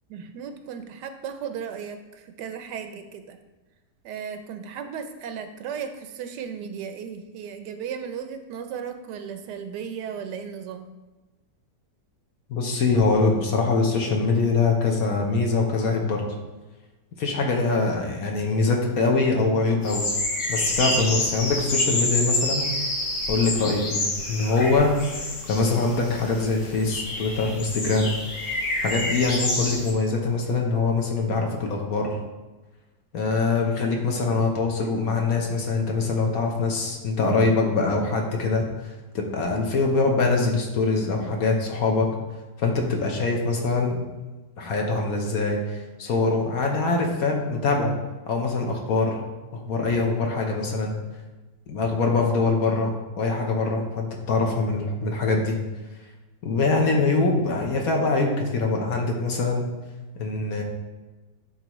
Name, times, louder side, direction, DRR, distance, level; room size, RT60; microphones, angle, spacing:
voice 1, 0.1-3.4 4.0-10.9, right 7 dB, 80° right, 8 dB, 1.2 m, -35 dB
voice 2, 12.5-16.3 17.2-20.1 20.5-22.6 23.3-28.1 28.8-32.2 33.1-42.1 42.6-44.0 44.6-47.9 48.3-49.2 49.5-50.9 51.7-55.6 56.4-59.7 60.2-60.6, left 3 dB, 60° left, 1 dB, 1.3 m, -23 dB
sound 1, 19.8-29.9, left 2 dB, 85° left, 1.8 m, -28 dB
10.0 x 4.0 x 3.0 m, 1.2 s
omnidirectional pair, 1.8 m